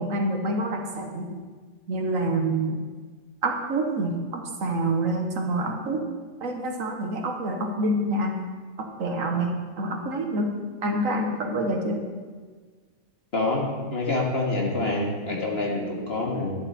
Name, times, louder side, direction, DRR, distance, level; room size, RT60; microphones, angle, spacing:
voice 1, 0.0-1.4 1.9-2.8 3.4-6.0 6.4-8.3 8.8-10.6 10.8-12.1, right 1 dB, 70° right, 3 dB, 1.6 m, -27 dB
voice 2, 13.3-16.6, left 2 dB, 45° left, -1 dB, 2.0 m, -27 dB
11.5 x 10.5 x 4.2 m, 1.4 s
omnidirectional pair, 1.4 m